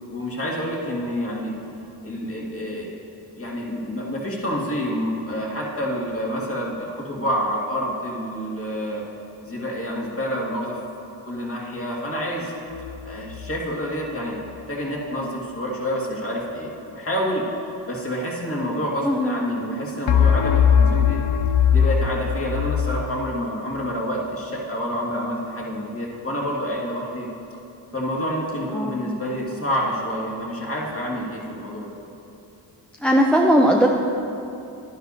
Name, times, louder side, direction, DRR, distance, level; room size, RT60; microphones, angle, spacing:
voice 1, 0.1-1.6 2.0-3.0 3.4-9.0 9.4-10.8 11.2-12.5 13.1-14.4 14.7-17.5 17.9-21.2 21.7-27.3 27.9-31.9, equal, 25° left, -4 dB, 2.1 m, -28 dB
sound 1, 12.7-13.6 20.1-23.1, left 7 dB, 65° left, 0.7 m, -20 dB
voice 2, 19.0-19.4 28.7-29.2 33.0-33.9, equal, ahead, -1 dB, 0.6 m, -18 dB
10.5 x 10.5 x 2.8 m, 2.8 s
cardioid pair, 60°, 49 cm